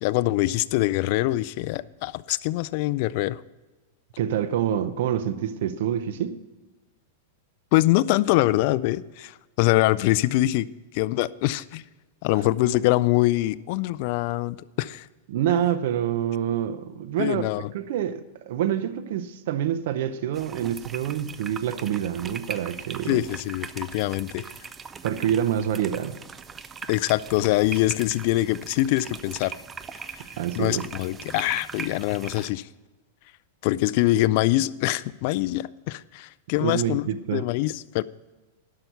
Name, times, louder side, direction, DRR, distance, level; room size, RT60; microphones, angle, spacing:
voice 1, 0.0-3.4 7.7-10.7 10.9-11.8 12.2-15.1 17.2-17.7 23.1-24.5 26.9-29.5 30.5-32.7 33.6-38.0, left 17 dB, 50° left, 0.4 m, -24 dB
voice 2, 4.2-6.3 15.3-17.5 17.7-23.2 25.0-26.2 30.4-30.9 36.6-37.4, right 10 dB, 65° right, 0.7 m, -26 dB
sound 1, 20.3-32.5, right 5 dB, 20° right, 0.5 m, -40 dB
11.5 x 5.8 x 7.9 m
supercardioid pair, 140°, 0 cm